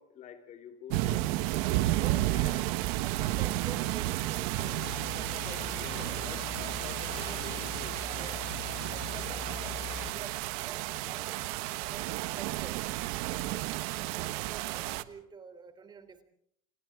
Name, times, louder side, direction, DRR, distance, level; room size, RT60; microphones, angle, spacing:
voice 1, 0.0-1.3 2.3-2.7 5.4-8.0 9.1-9.4 9.6-10.1 13.5-13.8, left 8 dB, 40° left, 6 dB, 3.1 m, -49 dB
sound 1, 0.9-15.0, right 16 dB, 80° right, 1.3 m, -32 dB
voice 2, 2.0-6.4 7.0-7.7 8.0-8.5 8.9-9.8 10.1-12.9 14.1-16.2, right 5 dB, 25° right, 10 dB, 3.4 m, -48 dB
sound 2, 4.6-10.1, left 11 dB, 65° left, 1.4 m, -43 dB
29.5 x 29.0 x 3.7 m, 0.66 s
cardioid pair, 155°, 19 cm